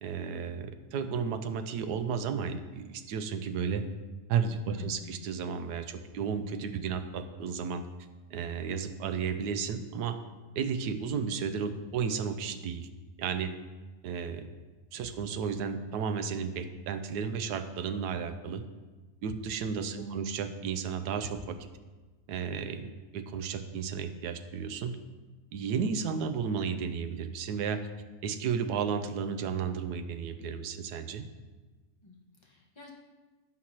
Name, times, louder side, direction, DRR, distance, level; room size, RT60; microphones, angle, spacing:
voice 1, 0.0-3.9 4.3-7.8 8.3-10.2 10.6-12.9 13.2-13.5 14.0-14.5 14.9-18.7 19.2-21.7 22.3-24.9 25.5-27.9 28.2-31.3, right 6 dB, 90° right, 9 dB, 1.2 m, -33 dB
voice 2, 4.7-5.2 19.9-20.3 32.0-32.9, equal, 20° left, -2 dB, 1.3 m, -45 dB
15.0 x 6.1 x 2.9 m, 1.3 s
omnidirectional pair, 1.7 m